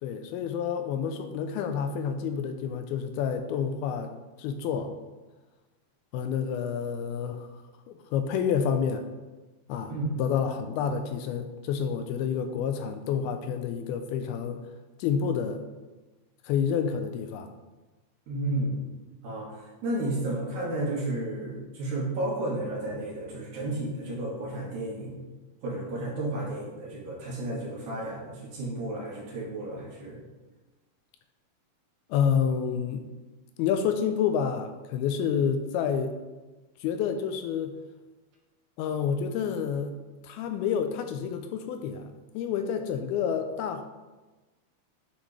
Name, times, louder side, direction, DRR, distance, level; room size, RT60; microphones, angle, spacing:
voice 1, 0.0-4.1 4.4-4.9 6.1-9.0 9.7-9.9 10.2-14.6 15.0-15.6 16.4-17.5 32.1-33.1 33.6-36.2 36.8-37.8 38.8-39.9 40.2-43.8, left 7 dB, 85° left, 7 dB, 2.4 m, -29 dB
voice 2, 18.3-18.9 19.2-25.2 25.6-30.2, right 1 dB, 60° right, -4 dB, 2.8 m, -32 dB
9.6 x 6.3 x 3.2 m, 1.2 s
omnidirectional pair, 4.5 m